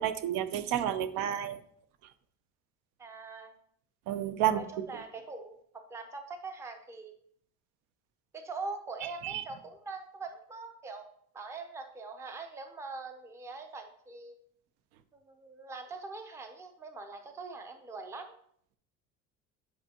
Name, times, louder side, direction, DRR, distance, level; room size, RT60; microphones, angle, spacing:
voice 1, 0.0-1.6 4.1-4.6 9.2-9.4, right 11 dB, 80° right, 12 dB, 0.6 m, -30 dB
voice 2, 3.0-3.5 4.5-7.1 8.3-11.1 11.3-14.3 15.1-18.3, right 3 dB, 10° right, 6 dB, 0.4 m, -43 dB
8.6 x 4.5 x 2.8 m, 0.65 s
cardioid pair, 165°, 31 cm